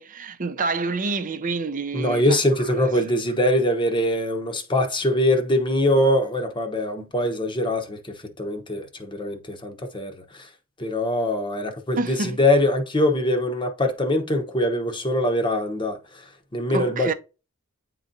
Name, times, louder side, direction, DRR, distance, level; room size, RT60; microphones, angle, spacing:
voice 1, 0.0-2.7 12.0-12.4 16.7-17.1, right 3 dB, 40° right, 0.6 m, -28 dB
voice 2, 1.9-10.5 10.8-16.2 16.5-17.1, left 1 dB, 20° left, 0.9 m, -23 dB
9.4 x 3.9 x 2.7 m
head